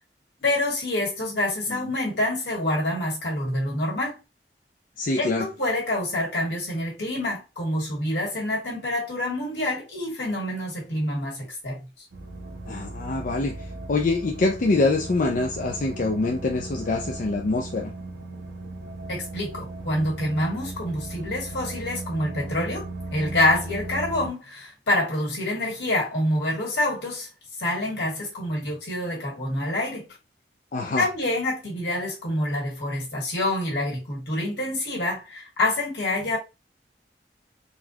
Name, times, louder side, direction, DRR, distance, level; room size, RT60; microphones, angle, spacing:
voice 1, 0.4-4.2 5.2-11.8 19.1-22.9 23.1-27.3 27.6-30.1 31.0-36.4, left 1 dB, 75° left, 1.9 m, -27 dB
voice 2, 5.0-5.5 12.7-17.9 30.7-31.1, left 3 dB, 50° left, 0.4 m, -25 dB
sound 1, 12.1-24.3, right 2 dB, 90° right, 0.8 m, -37 dB
4.1 x 2.3 x 2.8 m
head